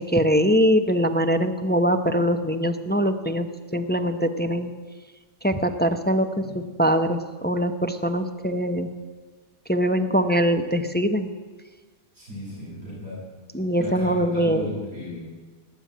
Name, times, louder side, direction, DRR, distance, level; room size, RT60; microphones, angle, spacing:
voice 1, 0.1-3.5 3.7-4.7 5.4-6.3 6.8-7.2 7.4-8.9 9.7-11.3 13.5-14.7, equal, 10° left, 8 dB, 0.4 m, -22 dB
voice 2, 12.1-13.2 13.8-15.4, left 1 dB, 75° right, -7 dB, 8.1 m, -35 dB
19.5 x 7.9 x 9.3 m, 1.3 s
omnidirectional pair, 1.5 m